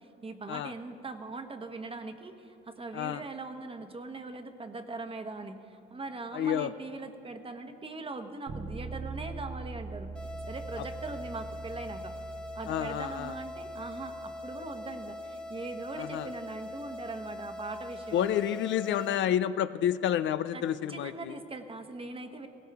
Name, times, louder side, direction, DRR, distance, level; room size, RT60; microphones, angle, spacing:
voice 1, 0.0-10.1 10.5-12.2 12.5-18.4 20.5-22.5, right 3 dB, 25° right, 7 dB, 1.1 m, -41 dB
voice 2, 6.3-6.7 12.7-13.3 16.0-16.3 18.1-21.3, left 10 dB, 70° left, 14 dB, 0.5 m, -29 dB
Bass guitar, 8.5-18.3, right 4 dB, 70° right, 1.3 m, -44 dB
sound 1, 10.1-19.1, left 2 dB, 5° left, 1.4 m, -42 dB
17.5 x 17.0 x 3.5 m, 2.7 s
cardioid pair, 90°, 20 cm